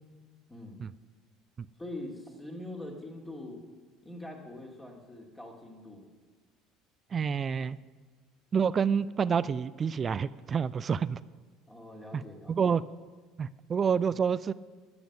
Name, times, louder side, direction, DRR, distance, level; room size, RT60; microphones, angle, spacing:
voice 1, 1.8-3.6 4.0-6.1 11.7-12.6, left 1 dB, 15° left, 0 dB, 2.5 m, -43 dB
voice 2, 7.1-7.8 8.5-11.2 12.1-12.2 12.5-12.8 13.4-14.5, right 6 dB, 30° right, 18 dB, 0.4 m, -28 dB
20.5 x 7.0 x 6.0 m, 1.4 s
figure-of-eight pair, 65°, 0 cm